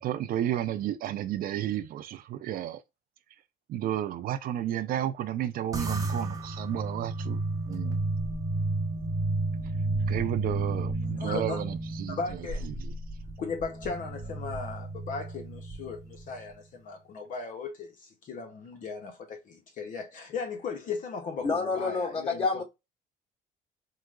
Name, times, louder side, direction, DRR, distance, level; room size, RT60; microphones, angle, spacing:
voice 1, 0.0-2.8 3.7-7.4 7.7-8.0 10.1-12.2 12.7-12.9, right 11 dB, 60° right, 0.4 m, -32 dB
sound 1, 5.7-16.3, right 2 dB, 20° right, 0.7 m, -32 dB
voice 2, 11.2-11.6 12.1-12.7 13.4-22.5, left 5 dB, 50° left, 0.7 m, -37 dB
voice 3, 21.4-22.6, left 4 dB, 35° left, 1.7 m, -28 dB
4.6 x 2.0 x 2.3 m
cardioid pair, 110°, 17 cm